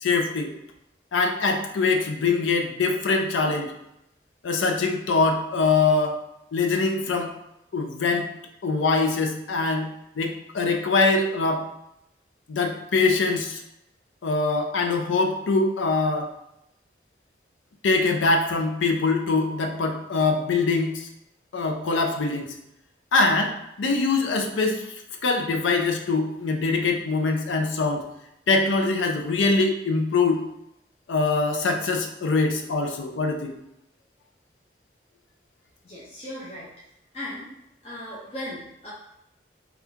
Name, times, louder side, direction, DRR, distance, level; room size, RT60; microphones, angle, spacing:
voice 1, 0.0-0.5 1.1-3.7 4.4-6.2 6.5-7.3 7.7-8.3 8.6-9.9 10.2-11.6 12.5-13.6 14.2-16.3 17.8-21.1 21.5-22.4 23.1-24.8 25.2-28.0 28.5-30.4 31.1-33.5, left 3 dB, 90° left, 4 dB, 0.5 m, -23 dB
voice 2, 35.8-36.7 37.1-37.5 37.8-38.9, left 1 dB, 30° left, -8 dB, 0.7 m, -37 dB
3.5 x 2.4 x 2.7 m, 0.82 s
head